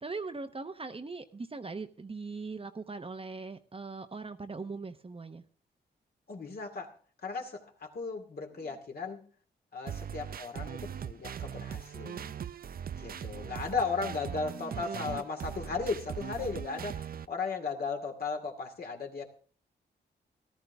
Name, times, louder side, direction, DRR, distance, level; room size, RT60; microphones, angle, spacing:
voice 1, 0.0-5.4 8.5-8.8 14.4-15.1, right 4 dB, 30° right, 8 dB, 1.0 m, -41 dB
voice 2, 6.3-6.9 7.2-9.2 9.7-12.3 13.0-19.3, left 4 dB, 55° left, 2 dB, 2.5 m, -36 dB
sound 1, 9.9-17.3, right 8 dB, 55° right, 0.5 m, -40 dB
14.5 x 13.5 x 3.5 m, 0.43 s
cardioid pair, 65°, 18 cm